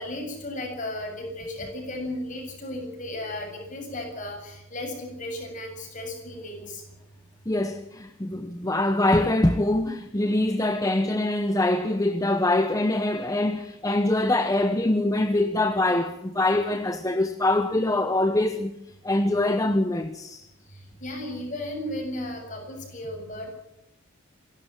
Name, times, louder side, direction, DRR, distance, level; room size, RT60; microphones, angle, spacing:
voice 1, 0.0-6.8 20.7-23.5, left 1 dB, 35° left, 7.3 m, -35 dB
voice 2, 7.5-18.7 19.0-20.5, left 1 dB, 15° left, 0.8 m, -24 dB
27.0 x 12.5 x 9.0 m
head